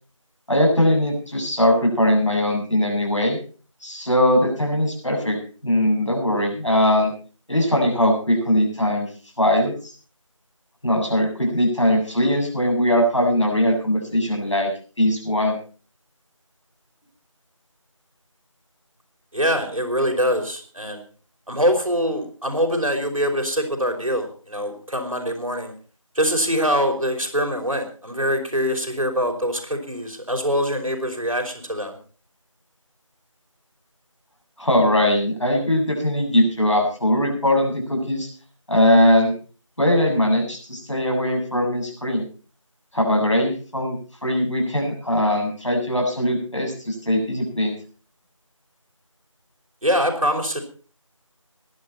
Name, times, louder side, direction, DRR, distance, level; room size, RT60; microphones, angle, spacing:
voice 1, 0.5-3.4 3.8-7.1 7.5-9.1 9.4-9.7 10.8-14.7 15.0-15.6 34.6-38.3 38.7-39.3 39.8-42.2 42.9-47.7, left 1 dB, 60° left, 1 dB, 7.4 m, -20 dB
voice 2, 19.3-21.0 21.5-25.7 26.2-32.0 49.8-50.6, equal, 85° right, 3 dB, 5.2 m, -23 dB
18.5 x 12.0 x 4.4 m, 0.39 s
figure-of-eight pair, 175°, 17 cm